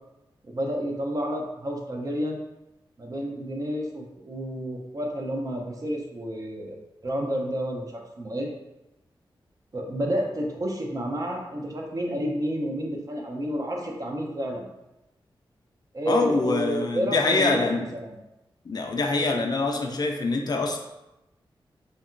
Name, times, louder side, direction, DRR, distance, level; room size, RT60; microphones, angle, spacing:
voice 1, 0.4-2.4 3.0-6.7 7.0-8.5 9.7-14.7 15.9-18.2, equal, 40° right, 0 dB, 0.5 m, -30 dB
voice 2, 16.1-17.9 18.7-20.8, left 3 dB, 50° left, 2 dB, 0.4 m, -25 dB
2.8 x 2.2 x 2.4 m, 0.94 s
wide cardioid pair, 80°, 9 cm